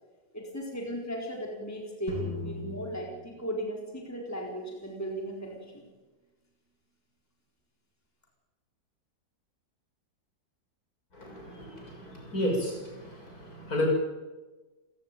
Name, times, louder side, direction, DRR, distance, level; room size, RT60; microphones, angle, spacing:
voice 1, 0.3-5.8, right 1 dB, 10° left, 0 dB, 4.3 m, -36 dB
sound 1, 2.1-4.2, left 4 dB, 75° right, 6.7 m, -39 dB
voice 2, 11.1-13.9, left 1 dB, 55° left, 0 dB, 7.2 m, -33 dB
30.0 x 16.5 x 9.3 m, 1.2 s
omnidirectional pair, 1.9 m